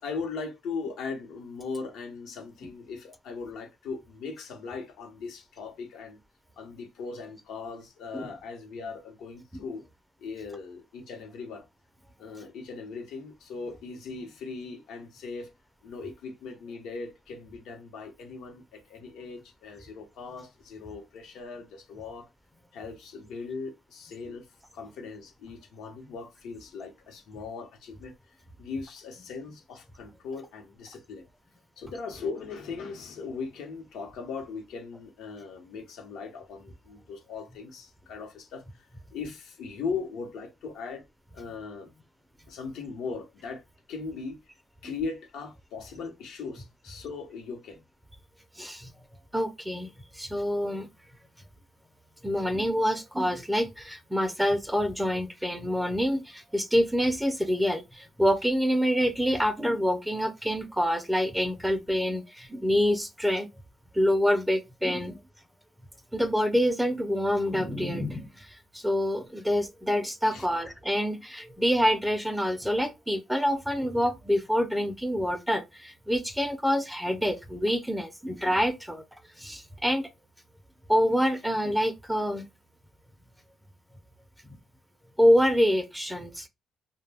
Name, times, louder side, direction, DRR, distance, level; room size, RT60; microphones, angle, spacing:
voice 1, 0.0-6.2 6.6-9.8 10.2-11.6 12.2-15.5 15.8-22.3 22.7-24.4 24.7-28.1 28.6-31.2 31.8-41.0 41.3-41.9 42.5-43.6 43.9-44.4 44.8-47.8 70.3-70.5, left 4 dB, 85° left, 0.8 m, -39 dB
voice 2, 48.6-48.9 49.3-50.9 52.2-63.5 63.9-65.2 66.1-79.0 79.4-80.1 80.9-82.5 85.2-86.5, equal, 5° right, 0.5 m, -26 dB
2.1 x 2.1 x 3.3 m
cardioid pair, 90°, 0 cm